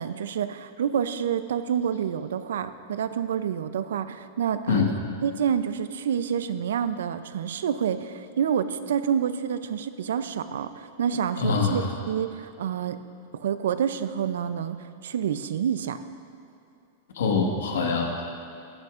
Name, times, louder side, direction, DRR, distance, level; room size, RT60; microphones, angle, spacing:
voice 1, 0.0-4.9 5.2-13.0 13.3-14.8 15.0-16.0, right 8 dB, 85° right, 12 dB, 0.5 m, -28 dB
voice 2, 11.4-11.9 17.1-18.2, left 5 dB, 90° left, 1 dB, 1.6 m, -24 dB
15.5 x 11.0 x 2.5 m, 2.6 s
supercardioid pair, 175°, 0 cm